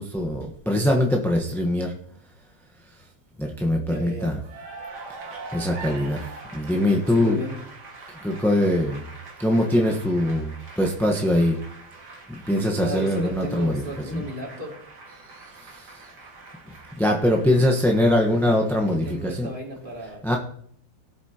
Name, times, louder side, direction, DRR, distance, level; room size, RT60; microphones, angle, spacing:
voice 1, 0.0-1.9 3.4-4.4 5.5-6.2 6.5-7.4 8.2-9.1 9.4-11.6 12.5-13.8 14.1-14.2 15.6-16.1 17.0-19.5 20.2-20.4, left 1 dB, ahead, 0 dB, 0.9 m, -22 dB
voice 2, 3.8-4.4 7.1-7.6 12.8-14.9 18.9-20.4, right 1 dB, 30° right, -2 dB, 3.0 m, -35 dB
Cheering / Applause, 4.4-19.3, right 3 dB, 90° right, 2.6 m, -43 dB
18.0 x 8.2 x 2.9 m, 0.63 s
omnidirectional pair, 1.8 m